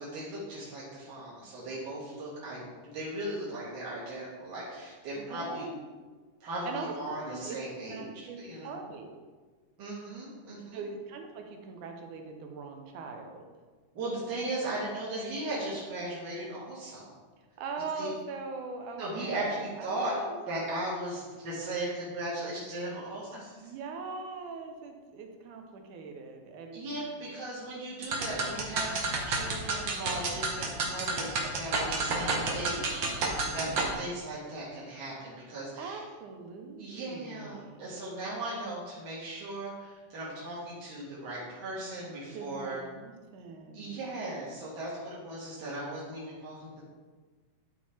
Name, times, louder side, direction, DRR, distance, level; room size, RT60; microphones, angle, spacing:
voice 1, 0.0-5.6 6.4-8.1 8.4-8.8 9.8-10.8 13.9-17.1 17.9-18.1 19.0-20.1 20.5-23.5 26.7-29.0 29.2-36.0 36.8-42.8 43.7-46.8, right 1 dB, 45° right, -7 dB, 1.6 m, -37 dB
voice 2, 5.2-5.8 6.7-7.6 7.9-9.2 10.7-13.5 17.6-20.7 23.3-27.1 31.8-32.6 33.4-34.1 35.8-37.9 42.3-44.0, right 4 dB, 85° right, 3 dB, 2.4 m, -42 dB
sound 1, 28.0-33.9, right 3 dB, 60° right, 1.3 m, -31 dB
10.5 x 4.5 x 4.3 m, 1.4 s
omnidirectional pair, 3.6 m